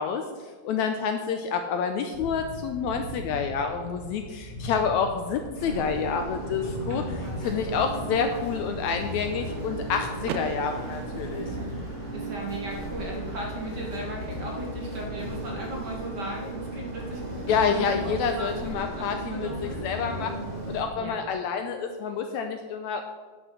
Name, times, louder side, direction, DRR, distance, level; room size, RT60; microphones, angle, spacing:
voice 1, 0.0-11.5 17.5-20.4 20.7-23.0, left 6 dB, 80° left, 6 dB, 1.7 m, -28 dB
Thunder / Bicycle, 2.1-19.3, equal, 40° left, 0.8 m, -43 dB
sound 1, 5.6-20.8, right 1 dB, 15° right, 2.0 m, -35 dB
voice 2, 6.9-7.4 12.1-19.9 20.9-21.2, right 1 dB, 45° right, -1 dB, 1.5 m, -37 dB
Car / Door, 10.2-12.2, right 6 dB, 75° right, 1.9 m, -38 dB
9.7 x 6.4 x 6.1 m, 1.4 s
omnidirectional pair, 3.9 m